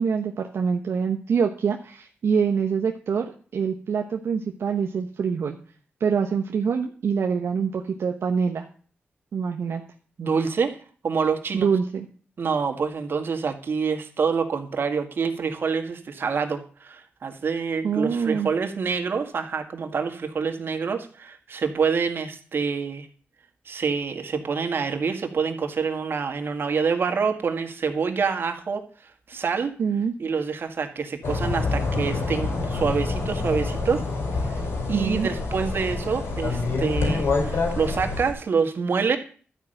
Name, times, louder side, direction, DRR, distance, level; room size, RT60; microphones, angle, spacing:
voice 1, 0.0-5.6 6.0-8.7 9.3-9.8 11.5-12.1 17.8-18.5 29.8-30.1 34.9-35.3, right 6 dB, 75° right, 3 dB, 1.0 m, -25 dB
voice 2, 10.2-10.8 11.0-11.7 12.4-23.1 23.7-29.7 30.2-34.0 34.4-34.5 34.9-39.2, right 5 dB, 60° right, 5 dB, 1.8 m, -26 dB
sound 1, 31.2-38.3, left 3 dB, 80° left, 4.9 m, -26 dB
12.5 x 5.6 x 9.0 m, 0.42 s
cardioid pair, 95°, 4 cm